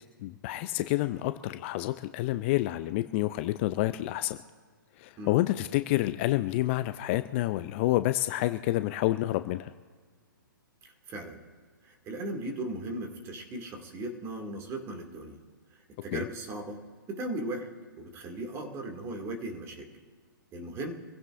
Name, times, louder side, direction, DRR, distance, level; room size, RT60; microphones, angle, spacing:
voice 1, 0.2-4.4 5.0-9.7 16.1-16.2, left 16 dB, 35° left, 11 dB, 0.5 m, -28 dB
voice 2, 11.1-11.4 12.1-15.4 16.0-16.8 17.1-17.7 18.0-19.9 20.5-20.9, right 1 dB, 25° right, 3 dB, 2.3 m, -37 dB
26.0 x 16.0 x 2.6 m, 1.5 s
figure-of-eight pair, 125°, 11 cm